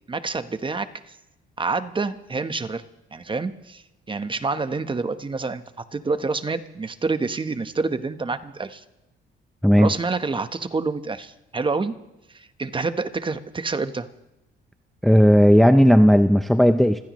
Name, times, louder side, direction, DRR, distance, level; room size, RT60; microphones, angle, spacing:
voice 1, 0.1-1.2 1.6-2.8 3.1-8.8 9.8-11.9 12.3-14.1, right 4 dB, 25° right, 10 dB, 1.1 m, -28 dB
voice 2, 15.0-17.0, equal, ahead, 9 dB, 0.6 m, -15 dB
27.0 x 15.5 x 3.1 m, 0.94 s
cardioid pair, 90°, 20 cm